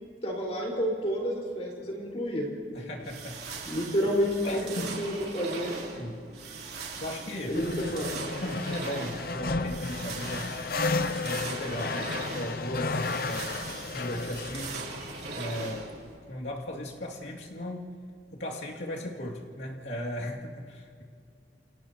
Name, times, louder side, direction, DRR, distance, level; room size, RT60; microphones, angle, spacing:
voice 1, 0.2-2.5 3.6-4.7 5.0-5.8 7.5-8.2, equal, 35° left, -3 dB, 4.9 m, -30 dB
voice 2, 2.7-3.8 4.4-5.0 5.9-6.2 6.9-7.6 8.4-10.5 11.2-14.8 15.3-15.9 16.3-17.9 18.3-21.0, left 1 dB, 85° left, -3 dB, 2.5 m, -36 dB
sound 1, 3.0-16.2, right 4 dB, 65° right, 3.3 m, -40 dB
sound 2, 7.5-16.2, left 3 dB, 55° left, 0.7 m, -33 dB
29.5 x 29.5 x 3.0 m, 2.2 s
head